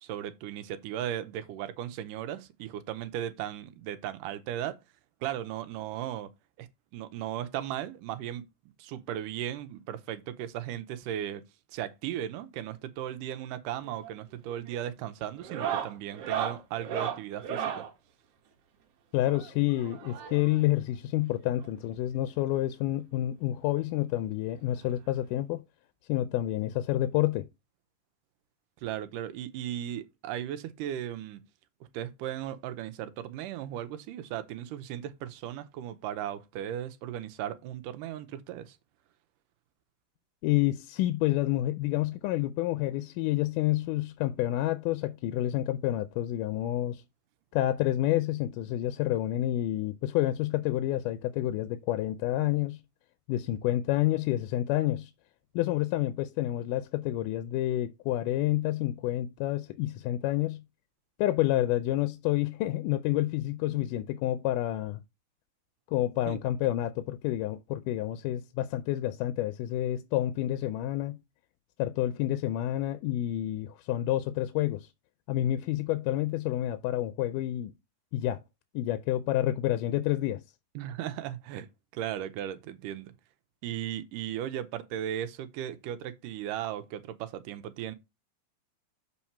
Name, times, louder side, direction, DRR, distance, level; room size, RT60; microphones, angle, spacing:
voice 1, 0.0-4.8 5.2-6.3 6.6-6.7 6.9-8.5 8.8-11.4 11.7-17.8 28.8-31.4 31.9-38.8 66.3-66.4 80.8-81.7 81.9-83.1 83.6-88.0, right 11 dB, 85° right, 2.3 m, -36 dB
sound 1, 13.8-14.2 14.5-14.8 15.4-17.9 19.2-20.6 21.6-21.7 21.9-22.1 22.5-22.6 23.9-24.0 25.3-25.4, right 9 dB, 65° right, 1.7 m, -35 dB
voice 2, 19.1-25.6 26.1-27.5 40.4-47.0 47.5-52.8 53.3-55.1 55.6-60.6 61.2-65.0 65.9-71.2 71.8-74.9 75.3-77.7 78.1-78.4 78.7-80.4, left 14 dB, 80° left, 2.1 m, -29 dB
7.2 x 4.4 x 4.3 m
omnidirectional pair, 3.8 m